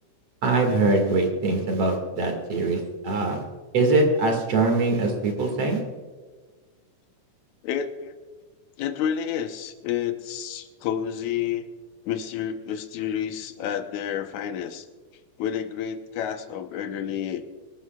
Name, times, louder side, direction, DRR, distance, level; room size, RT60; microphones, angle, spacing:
voice 1, 0.4-3.4 3.7-5.8, right 3 dB, 50° right, 3 dB, 3.0 m, -23 dB
voice 2, 7.6-8.1 8.8-11.6 12.0-14.9 15.4-17.4, left 9 dB, 75° left, 7 dB, 2.3 m, -29 dB
25.5 x 12.5 x 2.4 m, 1.4 s
omnidirectional pair, 3.6 m